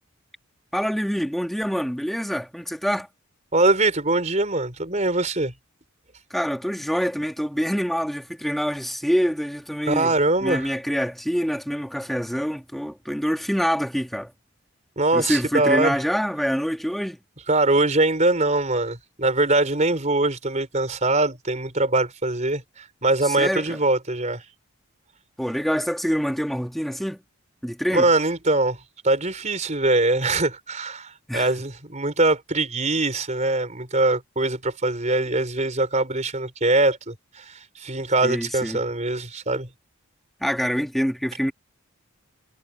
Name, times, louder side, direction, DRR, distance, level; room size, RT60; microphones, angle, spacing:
voice 1, 0.7-3.1 6.3-10.1 10.4-14.3 15.1-17.2 23.2-23.8 25.4-27.2 27.6-28.1 31.3-31.5 38.2-38.8 40.4-41.5, equal, ahead, 2.4 m, -26 dB
voice 2, 3.5-5.5 9.9-10.7 15.0-15.9 17.5-24.4 27.9-28.8 29.0-39.7, right 2 dB, 30° right, 4.6 m, -22 dB
head